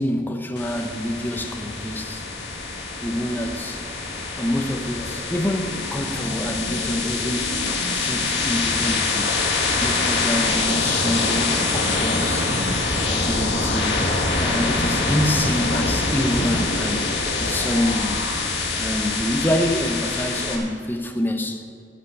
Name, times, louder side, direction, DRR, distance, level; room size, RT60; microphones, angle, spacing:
voice 1, 0.0-2.2 3.0-3.8 4.4-7.6 7.9-9.4 9.8-12.5 12.9-13.9 14.4-17.1 17.4-18.2 18.8-21.6, left 1 dB, 10° left, 5 dB, 0.9 m, -26 dB
sound 1, 0.6-20.6, left 3 dB, 65° left, 2.1 m, -24 dB
16.5 x 5.8 x 8.0 m, 2.5 s
head